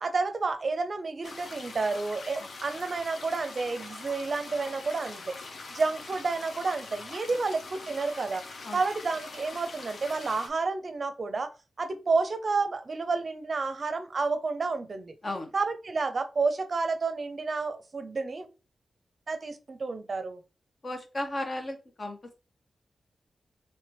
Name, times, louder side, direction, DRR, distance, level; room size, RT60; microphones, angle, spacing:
voice 1, 0.0-5.4 5.7-8.5 8.7-11.5 11.8-15.1 15.5-18.5 19.3-20.4, right 4 dB, 50° right, 0.5 m, -30 dB
sound 1, 1.2-10.5, left 3 dB, 70° left, 0.7 m, -43 dB
voice 2, 20.8-22.3, left 1 dB, 40° left, 0.9 m, -35 dB
3.3 x 3.2 x 3.0 m
wide cardioid pair, 95°, 0 cm